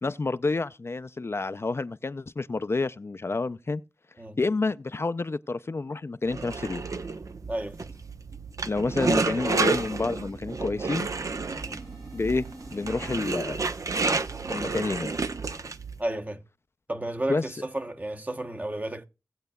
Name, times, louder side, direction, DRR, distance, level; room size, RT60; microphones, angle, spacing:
voice 1, 0.0-3.8 4.4-6.8 8.7-11.1 12.1-12.5 12.7-13.7 14.5-15.2 17.3-17.4, left 3 dB, 45° left, 0.4 m, -29 dB
sound 1, 6.3-16.0, right 4 dB, 70° right, 0.7 m, -30 dB
sound 2, 7.4-13.4, right 2 dB, 90° right, 5.5 m, -48 dB
voice 2, 7.5-7.9 11.6-11.8 16.0-16.4 16.9-19.0, right 1 dB, 25° right, 0.9 m, -32 dB
18.0 x 8.0 x 2.2 m
wide cardioid pair, 60°, 6 cm